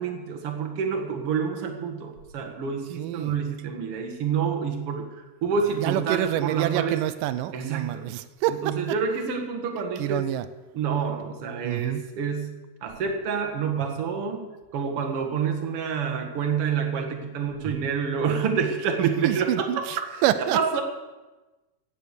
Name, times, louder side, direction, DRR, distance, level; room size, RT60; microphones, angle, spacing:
voice 1, 0.0-7.0 7.5-8.0 8.5-10.2 10.7-19.8 20.5-20.8, right 6 dB, 50° right, 2 dB, 2.3 m, -28 dB
voice 2, 3.0-3.4 5.8-8.8 10.0-10.5 11.6-12.1 19.0-20.6, right 13 dB, 90° right, 12 dB, 2.2 m, -27 dB
15.5 x 8.7 x 6.7 m, 1.2 s
omnidirectional pair, 3.7 m